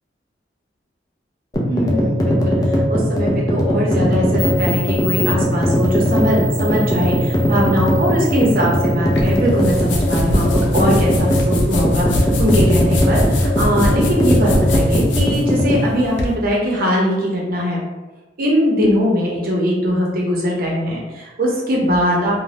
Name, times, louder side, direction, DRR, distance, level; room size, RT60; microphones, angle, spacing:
sound 1, 1.5-15.8, equal, 20° left, 0.4 m, -18 dB
voice 1, 1.6-2.6 2.9-17.8 18.4-22.4, equal, 55° right, -2 dB, 0.7 m, -20 dB
sound 2, 4.0-4.1 4.4-9.4, right 2 dB, 25° right, 1.1 m, -32 dB
sound 3, 9.1-16.3, left 1 dB, 75° left, 0.5 m, -23 dB
2.6 x 2.2 x 3.2 m, 1.2 s
head